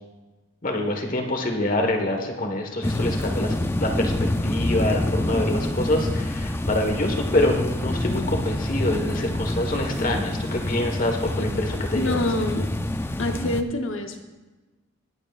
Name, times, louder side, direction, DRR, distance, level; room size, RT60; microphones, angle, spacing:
voice 1, 0.6-12.3, left 1 dB, 45° left, 3 dB, 1.4 m, -26 dB
sound 1, 2.8-13.6, left 1 dB, 10° left, 0.4 m, -27 dB
voice 2, 11.3-12.8 13.2-14.2, left 2 dB, 85° left, 5 dB, 1.0 m, -27 dB
21.0 x 8.1 x 2.5 m, 1.2 s
head